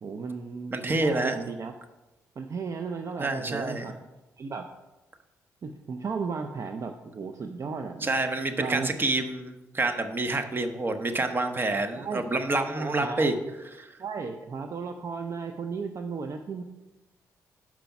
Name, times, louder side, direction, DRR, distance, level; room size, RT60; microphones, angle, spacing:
voice 1, 0.0-1.7 2.4-4.0 4.4-4.6 5.6-8.2 8.6-8.9 12.0-12.3 12.7-13.3 14.0-16.6, right 5 dB, 50° right, 6 dB, 0.5 m, -34 dB
voice 2, 0.7-1.4 3.2-3.9 8.0-13.3 13.8-14.0, right 2 dB, 30° right, 8 dB, 0.9 m, -28 dB
6.0 x 5.1 x 5.8 m, 1.1 s
supercardioid pair, 60°, 7 cm